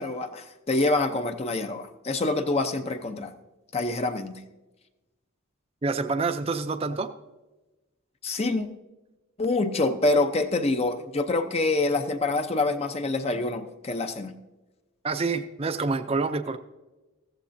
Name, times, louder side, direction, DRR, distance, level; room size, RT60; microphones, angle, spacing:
voice 1, 0.0-3.3 3.7-4.4 8.2-8.7 9.4-14.4, left 2 dB, 30° left, 7 dB, 0.6 m, -26 dB
voice 2, 5.8-7.1 15.0-16.6, right 4 dB, 30° right, 9 dB, 0.5 m, -27 dB
15.0 x 14.5 x 2.6 m, 1.1 s
head